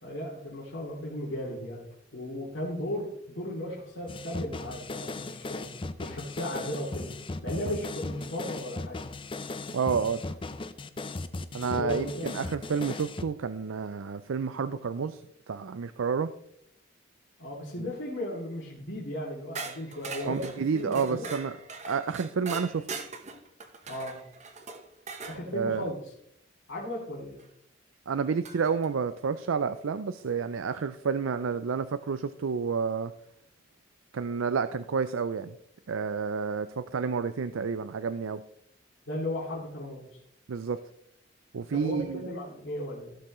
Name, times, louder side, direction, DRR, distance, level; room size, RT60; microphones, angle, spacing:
voice 1, 0.0-5.7 6.0-7.2 7.4-9.0 11.7-12.3 17.4-21.2 23.9-24.3 25.3-26.1 26.7-27.4 39.1-40.1 41.7-43.2, left 1 dB, 75° left, -7 dB, 2.7 m, -36 dB
sound 1, 4.1-13.2, left 2 dB, 25° left, 0.5 m, -37 dB
voice 2, 9.7-10.4 11.5-15.2 15.5-16.3 17.8-17.9 20.2-21.6 21.9-22.9 25.5-25.9 28.1-33.1 34.1-35.6 35.9-38.4 40.5-40.8 41.5-42.3, right 5 dB, 90° right, 12 dB, 0.5 m, -30 dB
sound 2, 19.5-25.4 27.4-27.5 28.4-28.9, right 4 dB, 35° right, 1.0 m, -41 dB
15.5 x 6.8 x 3.1 m, 0.70 s
head